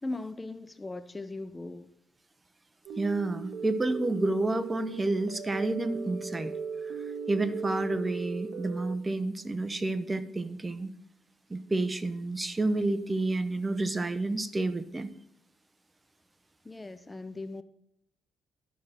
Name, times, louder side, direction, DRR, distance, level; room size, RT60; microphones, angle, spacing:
voice 1, 0.0-1.9 16.6-17.6, left 2 dB, 15° left, 0.6 m, -38 dB
sound 1, 2.9-9.0, right 5 dB, 60° right, 2.0 m, -38 dB
voice 2, 3.0-6.5 6.8-7.0 7.3-10.9 11.5-15.1, right 2 dB, 20° right, 0.9 m, -30 dB
12.0 x 6.5 x 5.9 m
cardioid pair, 90°, 0 cm